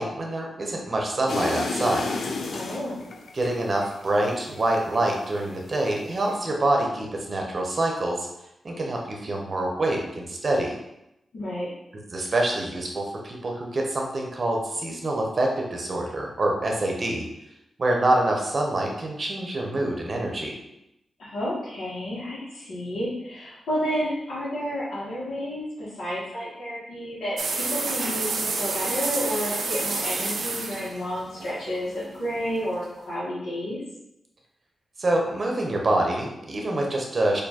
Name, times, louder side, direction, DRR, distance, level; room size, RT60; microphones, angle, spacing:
voice 1, 0.0-2.1 3.3-8.3 8.6-10.8 12.1-17.2 17.8-20.5 35.0-37.4, right 1 dB, 40° right, 0 dB, 0.7 m, -26 dB
sound 1, 1.3-5.4 5.8-6.4, left 3 dB, 70° left, 0.4 m, -32 dB
voice 2, 2.5-3.0 11.3-11.7 21.2-33.8, equal, 90° left, -10 dB, 1.2 m, -31 dB
sound 2, 27.4-32.3, right 3 dB, 80° right, 0.5 m, -29 dB
4.4 x 2.6 x 2.9 m, 0.86 s
wide cardioid pair, 130°, 0 cm